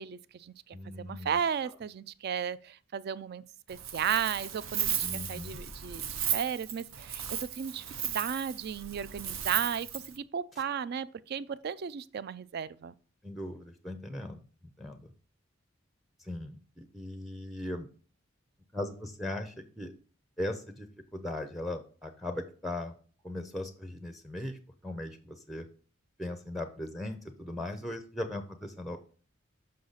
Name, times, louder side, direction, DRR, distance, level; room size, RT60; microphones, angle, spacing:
voice 1, 0.0-3.4 3.7-12.9, right 7 dB, 50° right, 0.3 m, -35 dB
voice 2, 0.7-1.4 5.0-5.6 13.2-14.4 14.8-15.1 16.2-17.9 18.7-19.9 20.4-20.9 21.1-22.9 23.2-25.7 26.2-29.0, left 1 dB, ahead, 0.5 m, -38 dB
Wind, 3.7-10.2, right 9 dB, 90° right, 0.8 m, -35 dB
6.5 x 5.6 x 3.9 m
head